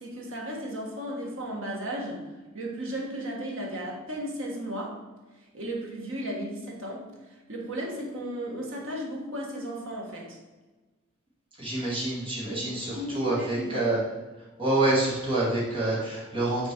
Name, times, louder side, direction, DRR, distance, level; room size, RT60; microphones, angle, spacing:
voice 1, 0.0-2.2 2.5-5.0 5.5-10.4 12.5-13.9, equal, 70° right, -2 dB, 1.6 m, -35 dB
voice 2, 11.6-14.0 14.6-16.7, right 2 dB, 25° right, -7 dB, 2.1 m, -27 dB
6.1 x 4.4 x 4.5 m, 1.2 s
head